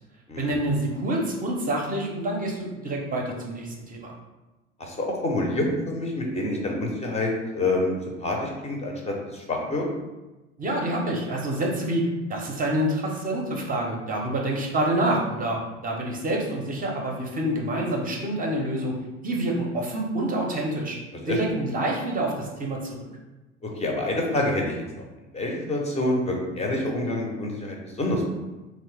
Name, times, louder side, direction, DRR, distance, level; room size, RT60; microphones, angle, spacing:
voice 1, 0.4-4.1 10.6-18.9 19.2-21.0 21.3-23.1, right 1 dB, 25° right, -1 dB, 0.5 m, -27 dB
voice 2, 4.8-9.8 21.3-21.4 23.6-25.0 25.3-28.3, left 1 dB, 20° left, 0 dB, 0.5 m, -27 dB
2.8 x 2.0 x 3.1 m, 1.1 s
figure-of-eight pair, 65°, 36 cm